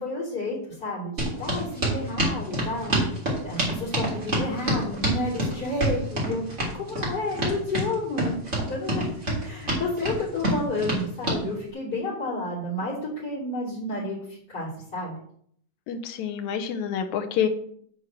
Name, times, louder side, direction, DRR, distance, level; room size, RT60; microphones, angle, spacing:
voice 1, 0.0-3.1 3.4-6.5 6.7-15.2, left 2 dB, 30° left, -6 dB, 3.5 m, -31 dB
sound 1, 1.2-11.4, right 1 dB, 20° right, 3.1 m, -27 dB
voice 2, 15.9-17.5, left 8 dB, 70° left, 6 dB, 2.1 m, -27 dB
9.6 x 4.5 x 7.5 m, 0.64 s
omnidirectional pair, 3.8 m